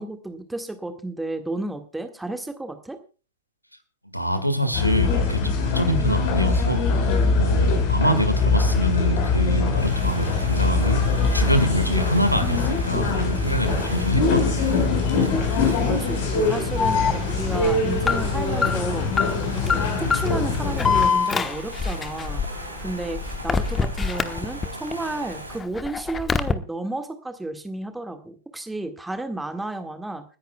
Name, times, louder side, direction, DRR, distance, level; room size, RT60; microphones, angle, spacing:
voice 1, 0.0-3.0 15.9-17.0 17.3-19.1 19.4-30.2, right 2 dB, 5° right, 7 dB, 1.8 m, -32 dB
voice 2, 4.1-6.8 7.4-11.0 11.3-14.7, right 1 dB, 90° left, 11 dB, 1.8 m, -25 dB
sound 1, 4.7-21.1, left 4 dB, 50° left, 4.1 m, -23 dB
sound 2, 9.8-25.6, right 2 dB, 85° right, 2.6 m, -38 dB
Alarm, 16.8-24.9 25.3-26.5, left 5 dB, 20° left, 1.1 m, -25 dB
29.5 x 10.5 x 2.3 m, 0.34 s
figure-of-eight pair, 90°, 0 cm